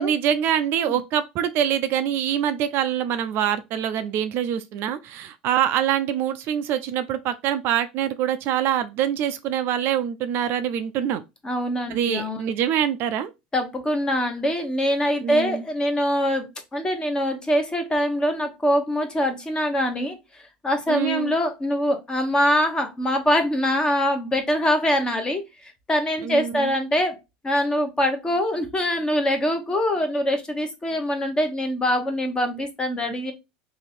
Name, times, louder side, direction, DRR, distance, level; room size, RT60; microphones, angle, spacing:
voice 1, 0.0-11.2 11.9-13.3 15.2-15.6 20.9-21.3 26.2-26.7, right 10 dB, 50° right, 0.4 m, -25 dB
voice 2, 11.4-12.4 13.5-27.1 27.4-33.3, equal, 15° left, 0.9 m, -24 dB
3.0 x 2.7 x 4.1 m
supercardioid pair, 105°, 5 cm